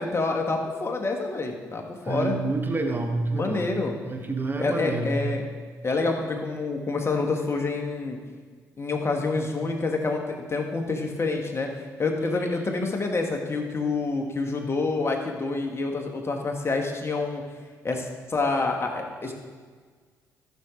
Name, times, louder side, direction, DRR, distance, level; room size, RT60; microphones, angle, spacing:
voice 1, 0.0-2.4 3.3-3.9 4.6-5.5 5.8-8.2 8.8-11.7 12.0-17.4 17.8-19.3, left 3 dB, 35° left, 2 dB, 1.7 m, -27 dB
voice 2, 2.1-3.7 4.1-5.1, right 3 dB, 25° right, 3 dB, 1.4 m, -28 dB
13.5 x 6.2 x 3.9 m, 1.6 s
hypercardioid pair, 45°, 8 cm